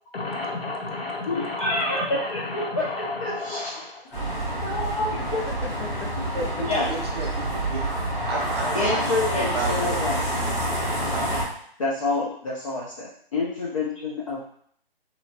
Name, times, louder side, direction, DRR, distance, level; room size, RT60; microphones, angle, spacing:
voice 1, 0.1-4.2 5.5-6.1, left 3 dB, 70° left, 1 dB, 0.8 m, -33 dB
voice 2, 1.3-3.9 4.6-5.4 6.6-6.9 8.7-10.3 11.8-14.4, left 2 dB, 35° left, -5 dB, 0.5 m, -28 dB
sound 1, 4.1-11.4, right 1 dB, 10° left, 0.8 m, -27 dB
voice 3, 6.3-7.3 7.7-7.8 8.3-10.1 10.6-11.2, right 3 dB, 25° right, -2 dB, 0.6 m, -33 dB
2.8 x 2.7 x 2.7 m, 0.63 s
figure-of-eight pair, 140°, 31 cm